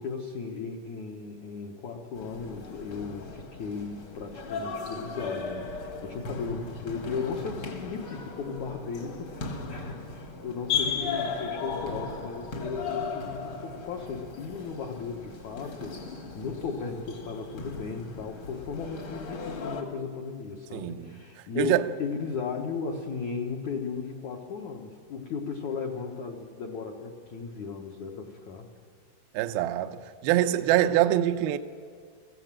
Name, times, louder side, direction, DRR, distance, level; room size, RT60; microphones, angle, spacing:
voice 1, 0.0-21.7 22.0-28.7, left 5 dB, 75° left, 1.7 m, -36 dB
sound 1, 2.2-19.8, left 4 dB, 55° left, 1.4 m, -37 dB
voice 2, 20.7-21.2 21.6-21.8 29.3-31.6, right 13 dB, 85° right, 2.2 m, -24 dB
23.5 x 15.5 x 7.5 m
omnidirectional pair, 5.3 m